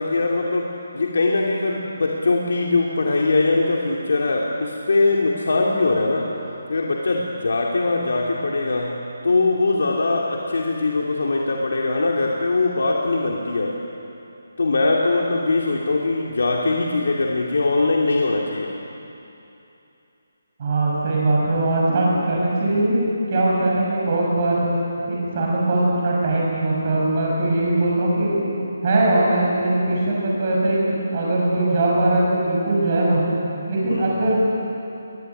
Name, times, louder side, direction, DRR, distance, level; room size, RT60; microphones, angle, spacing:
voice 1, 0.0-6.3 6.7-9.0 9.2-13.8 14.6-18.7 33.9-34.2, left 3 dB, 60° left, -1 dB, 2.6 m, -21 dB
voice 2, 20.6-24.6 25.1-28.5 28.8-33.3 33.7-34.3, right 2 dB, 25° right, -4 dB, 6.7 m, -20 dB
21.5 x 21.0 x 9.8 m, 2.8 s
hypercardioid pair, 180°, 0 cm